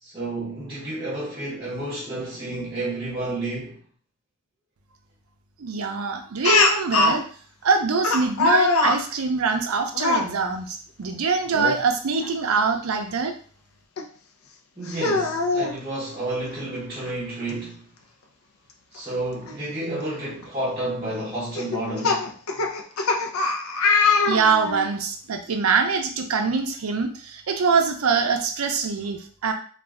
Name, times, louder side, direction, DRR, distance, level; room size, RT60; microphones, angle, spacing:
voice 1, 0.0-3.8 14.8-17.9 18.9-22.3, right 2 dB, 20° right, 0.8 m, -30 dB
voice 2, 5.6-7.2 7.6-13.3 24.2-29.5, right 5 dB, 90° right, 0.5 m, -24 dB
Speech, 6.4-7.2 8.0-9.0 9.9-10.3 11.5-11.8 12.2-12.3 14.0-14.1 14.9-15.7 17.1-17.2 17.5-17.6 19.5-19.6 20.2-20.4 21.5-24.9, left 3 dB, 85° left, 0.5 m, -22 dB
2.4 x 2.2 x 3.5 m
head